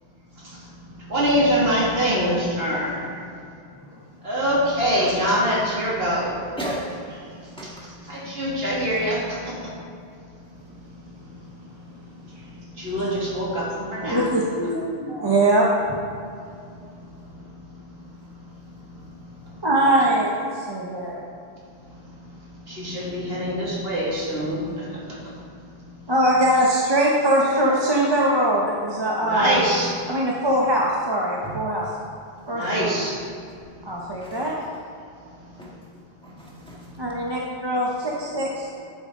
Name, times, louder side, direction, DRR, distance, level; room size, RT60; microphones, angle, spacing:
voice 1, 1.1-3.0 4.2-6.3 8.1-9.5 12.8-14.3 22.7-24.6 29.2-29.9 32.5-33.1, equal, 65° right, -6 dB, 2.6 m, -24 dB
voice 2, 6.6-7.0 7.6-8.2 31.4-31.6 34.2-34.7 35.6-35.7 36.2-36.8, right 1 dB, 5° left, -5 dB, 1.7 m, -35 dB
voice 3, 14.0-16.0 19.6-21.2 26.1-29.6 30.1-31.9 32.5-33.0 33.8-34.6 37.0-38.8, right 1 dB, 25° right, -3 dB, 1.0 m, -22 dB
10.5 x 9.1 x 3.8 m, 2.4 s
omnidirectional pair, 1.1 m